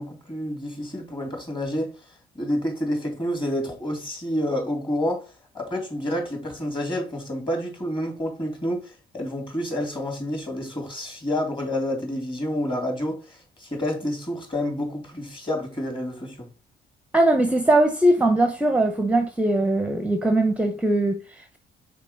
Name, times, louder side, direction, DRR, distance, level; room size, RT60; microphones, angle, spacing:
voice 1, 0.0-1.9 2.3-16.5, left 1 dB, 25° left, 2.8 m, -29 dB
voice 2, 17.1-21.6, right 1 dB, 5° right, 0.7 m, -21 dB
5.3 x 4.5 x 4.2 m
cardioid pair, 90°, 20 cm